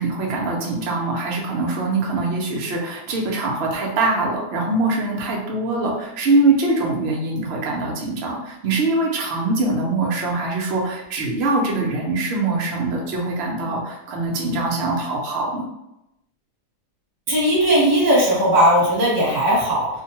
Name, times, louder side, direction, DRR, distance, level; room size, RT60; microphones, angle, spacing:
voice 1, 0.0-15.7, right 2 dB, 60° right, -2 dB, 0.6 m, -23 dB
voice 2, 17.3-19.9, equal, 30° right, -6 dB, 1.1 m, -17 dB
2.6 x 2.2 x 2.8 m, 0.87 s
omnidirectional pair, 1.7 m